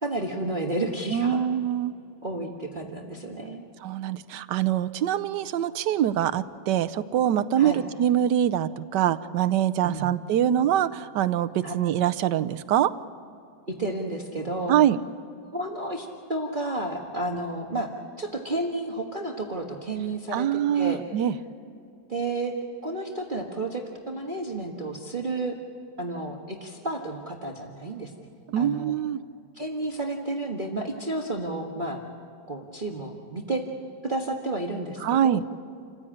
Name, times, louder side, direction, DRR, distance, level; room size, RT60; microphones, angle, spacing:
voice 1, 0.0-1.4 2.2-3.7 7.6-7.8 9.8-10.1 11.6-11.7 13.7-14.7 15.5-17.9 18.2-21.0 22.1-22.5 22.8-25.5 26.0-28.1 28.5-28.9 29.5-32.0 32.5-33.6 34.0-35.4, right 2 dB, 30° right, 0 dB, 1.6 m, -31 dB
voice 2, 1.1-1.9 3.8-12.9 14.7-15.0 20.3-21.3 28.5-29.2 35.0-35.4, right 10 dB, 80° right, 14 dB, 1.4 m, -24 dB
29.0 x 15.5 x 8.7 m, 2.5 s
omnidirectional pair, 1.9 m